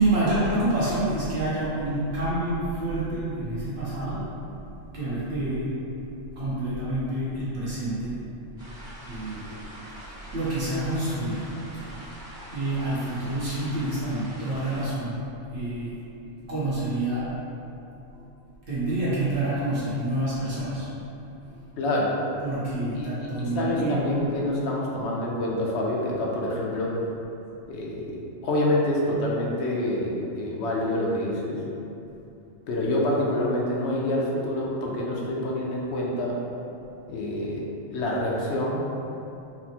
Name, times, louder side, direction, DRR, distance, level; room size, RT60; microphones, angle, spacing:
voice 1, 0.0-4.3 4.9-5.8 6.3-8.2 9.1-9.5 10.3-12.2 12.5-15.2 15.5-16.0 16.5-17.4 18.1-18.2 18.7-20.9 21.5-21.6 22.4-24.2, right 2 dB, 60° right, -10 dB, 1.0 m, -28 dB
sound 1, 8.6-14.9, right 1 dB, 20° left, 0.6 m, -44 dB
voice 2, 21.8-22.2 22.9-26.9 27.7-31.6 32.7-36.4 37.1-38.8, left 1 dB, 65° left, -3 dB, 0.8 m, -27 dB
4.1 x 2.0 x 2.8 m, 2.8 s
omnidirectional pair, 1.3 m